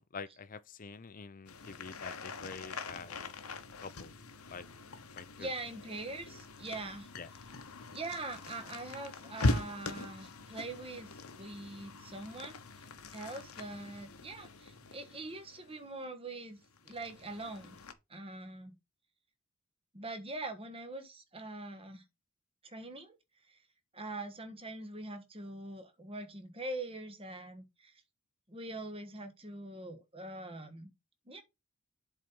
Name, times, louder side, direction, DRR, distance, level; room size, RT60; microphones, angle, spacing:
voice 1, 0.0-3.3 3.8-4.1 4.5-4.7 5.1-5.5 7.2-7.3, left 5 dB, 40° left, 0.6 m, -46 dB
sound 1, 1.5-15.9 16.6-17.9, left 2 dB, 85° left, 1.1 m, -41 dB
voice 2, 5.4-7.1 7.9-12.9 13.1-17.8 18.1-18.8 19.9-22.0 22.6-23.1 23.5-23.6 23.9-27.9 28.5-30.9 31.3-31.4, right 2 dB, 25° right, 1.4 m, -43 dB
7.8 x 4.3 x 5.3 m
head